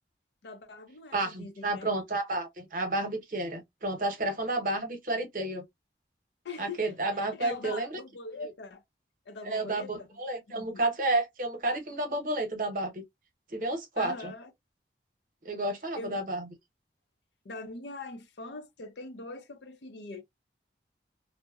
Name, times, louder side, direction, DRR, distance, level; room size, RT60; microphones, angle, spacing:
voice 1, 0.4-1.9 6.4-8.8 9.3-9.9 10.5-10.8 14.0-14.5 15.9-16.2 17.4-20.2, left 3 dB, 80° left, 0.5 m, -42 dB
voice 2, 1.1-5.6 6.6-7.9 8.4-8.5 9.4-13.0 13.5-14.3 15.4-16.5, right 2 dB, 50° right, 0.8 m, -31 dB
2.8 x 2.0 x 2.3 m
head